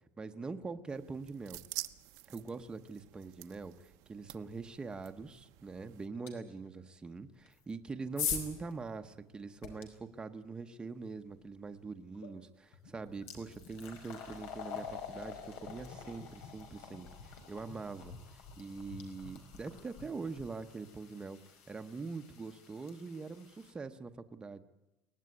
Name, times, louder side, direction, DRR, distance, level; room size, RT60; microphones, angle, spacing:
voice 1, 0.2-1.6 2.3-24.6, right 4 dB, 15° right, 7 dB, 0.9 m, -43 dB
sound 1, 0.9-6.1, right 18 dB, 70° right, 1.0 m, -48 dB
sound 2, 6.3-6.4 7.4-9.8 12.1-12.3 12.7-23.7, left 7 dB, 90° left, 5.0 m, -44 dB
23.0 x 18.5 x 9.7 m, 1.0 s
cardioid pair, 165°, 6 cm